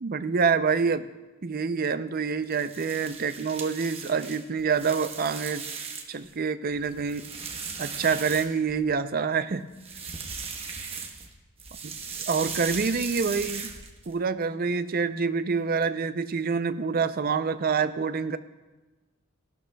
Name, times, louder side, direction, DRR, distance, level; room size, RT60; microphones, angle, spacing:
voice 1, 0.0-1.1 1.4-5.6 6.1-7.3 7.8-9.6 12.3-13.7 14.1-18.4, right 5 dB, 45° right, 11 dB, 0.5 m, -26 dB
sound 1, 2.4-6.3 6.7-8.9 9.7-11.3 11.6-14.1, right 5 dB, 30° right, 1.0 m, -38 dB
17.0 x 12.0 x 2.3 m, 1.2 s
head